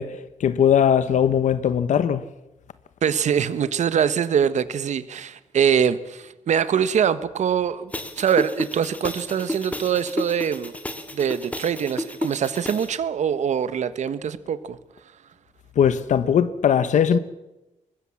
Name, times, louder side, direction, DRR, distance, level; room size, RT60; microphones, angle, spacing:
voice 1, 0.0-2.2 15.8-17.2, left 8 dB, 80° left, 1.1 m, -20 dB
voice 2, 3.0-10.8 11.1-14.8, right 8 dB, 70° right, 1.4 m, -23 dB
sound 1, 7.9-12.9, left 1 dB, 10° left, 2.2 m, -32 dB
24.5 x 21.0 x 7.3 m
wide cardioid pair, 150°, 12 cm